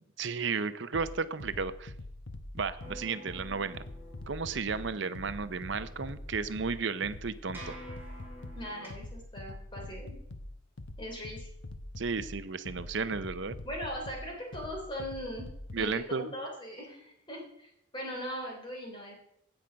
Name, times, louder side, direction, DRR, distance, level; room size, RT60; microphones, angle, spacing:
voice 1, 0.2-1.9 2.5-3.8 4.3-7.8 12.0-13.6 15.7-16.3, right 5 dB, 65° right, 13 dB, 0.6 m, -33 dB
sound 1, 0.9-15.9, left 1 dB, 65° left, 0.8 m, -44 dB
sound 2, 2.8-8.9, right 1 dB, 10° right, 2.9 m, -50 dB
voice 2, 8.5-10.2 11.0-11.5 13.6-15.5 15.7-19.2, equal, 25° left, 0 dB, 3.3 m, -40 dB
16.0 x 6.0 x 5.2 m, 0.76 s
head